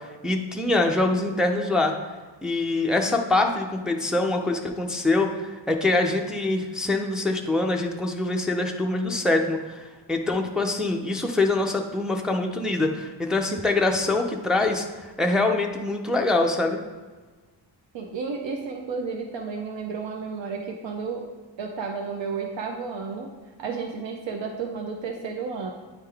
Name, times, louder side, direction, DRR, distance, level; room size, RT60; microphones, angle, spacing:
voice 1, 0.0-1.9 2.4-9.8 10.1-16.8, left 2 dB, ahead, 1 dB, 0.4 m, -24 dB
voice 2, 17.9-21.2 21.6-23.3 23.6-25.7, right 5 dB, 85° right, 2 dB, 0.7 m, -32 dB
9.3 x 3.7 x 3.3 m, 1.4 s
wide cardioid pair, 145°, 44 cm